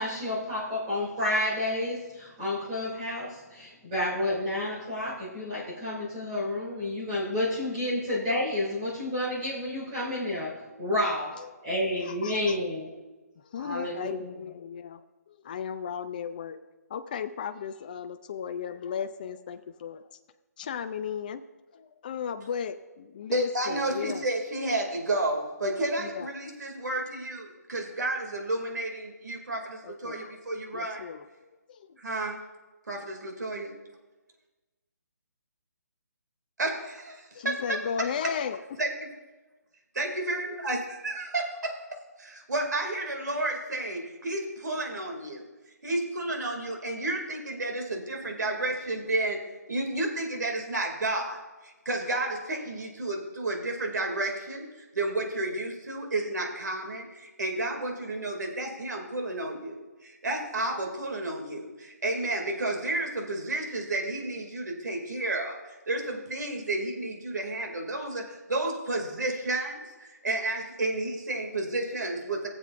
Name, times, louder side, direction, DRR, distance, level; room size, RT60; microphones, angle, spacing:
voice 1, 0.0-12.9 13.6-14.4, left 1 dB, 20° right, -8 dB, 2.6 m, -30 dB
voice 2, 12.1-12.6 13.5-16.6 16.9-20.1 20.6-21.4 21.7-24.3 26.0-26.3 29.8-30.4 30.7-31.2 31.7-32.0 37.3-38.6, left 7 dB, 30° left, 9 dB, 0.4 m, -35 dB
voice 3, 23.3-31.0 32.0-32.4 32.9-33.7 36.6-38.3 38.8-38.9 39.9-45.4 45.8-49.4 49.7-72.5, right 2 dB, 85° right, 2 dB, 2.4 m, -31 dB
18.5 x 7.5 x 2.5 m, 1.2 s
hypercardioid pair, 165°, 9 cm